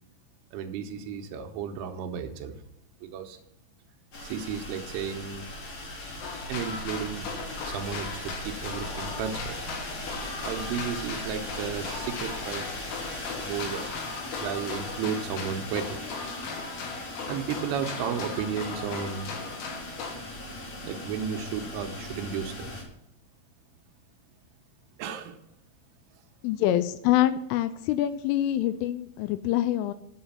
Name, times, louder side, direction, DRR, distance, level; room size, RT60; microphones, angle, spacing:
voice 1, 0.5-2.6 3.1-3.4 4.2-5.5 6.5-7.3 7.6-9.6 10.4-12.7 13.4-13.8 14.4-16.0 17.3-19.4 20.8-22.8 25.0-25.4, right 7 dB, 80° right, 5 dB, 3.3 m, -33 dB
sound 1, 4.1-22.8, left 1 dB, 40° left, 3.6 m, -39 dB
sound 2, 6.2-20.2, left 5 dB, 70° left, 3.6 m, -38 dB
voice 2, 26.4-29.9, left 13 dB, 85° left, 11 dB, 2.9 m, -25 dB
9.3 x 8.0 x 5.6 m, 0.79 s
omnidirectional pair, 5.9 m